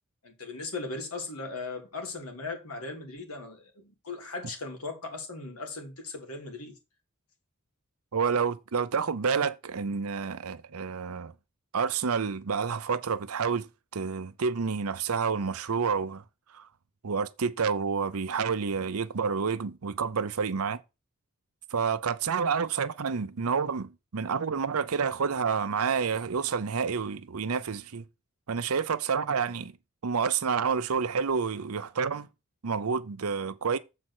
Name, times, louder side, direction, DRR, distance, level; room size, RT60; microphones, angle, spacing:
voice 1, 0.2-6.7, left 3 dB, 90° left, 2.6 m, -38 dB
voice 2, 8.1-11.3 11.7-16.2 16.5-16.7 17.0-20.8 21.7-28.0 28.5-29.7 30.0-32.3 32.6-33.8, right 6 dB, 90° right, 0.7 m, -29 dB
7.7 x 4.3 x 6.1 m
head